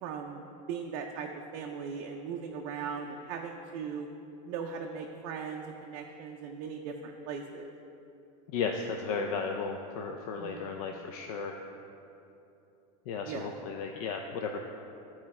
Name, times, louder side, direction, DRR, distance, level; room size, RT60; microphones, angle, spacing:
voice 1, 0.0-4.1 4.5-7.7 10.4-10.7 13.2-13.5, right 6 dB, 40° right, 1 dB, 0.4 m, -39 dB
voice 2, 8.5-11.6 13.1-14.6, left 5 dB, 60° left, 3 dB, 0.5 m, -34 dB
11.0 x 4.5 x 4.2 m, 2.9 s
supercardioid pair, 165°, 21 cm